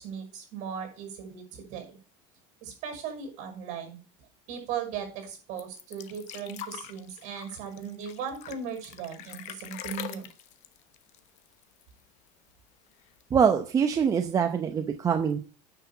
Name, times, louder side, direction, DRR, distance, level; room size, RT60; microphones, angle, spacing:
voice 1, 0.0-1.9 2.6-4.0 4.5-10.3, right 7 dB, 50° right, 4 dB, 5.7 m, -37 dB
sound 1, 5.6-12.0 12.3-12.4 12.7-13.4 14.2-14.3, left 11 dB, 50° left, 1.1 m, -43 dB
voice 2, 13.3-15.4, right 7 dB, 20° right, 6 dB, 0.8 m, -24 dB
10.0 x 6.0 x 6.9 m, 0.39 s
supercardioid pair, 150°, 16 cm